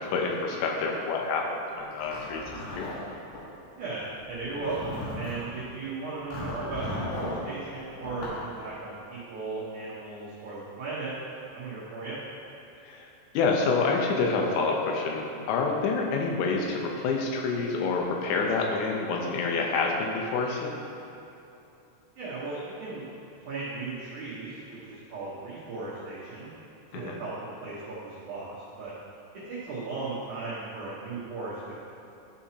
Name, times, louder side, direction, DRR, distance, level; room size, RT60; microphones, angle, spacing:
voice 1, 0.0-2.4 2.7-2.9 12.8-13.1 13.3-20.7 26.9-27.2, left 4 dB, 85° left, 0 dB, 3.3 m, -27 dB
Zipper (clothing), 1.9-3.4 4.3-5.5 6.3-7.4 8.0-8.4, left 1 dB, 65° left, 3.1 m, -36 dB
voice 2, 3.8-11.1 11.5-12.2 22.2-23.1 23.5-26.5 26.9-28.5 28.8-28.9 29.5-31.8, right 3 dB, 80° right, -9 dB, 1.7 m, -36 dB
12.5 x 5.8 x 2.9 m, 2.9 s
omnidirectional pair, 5.4 m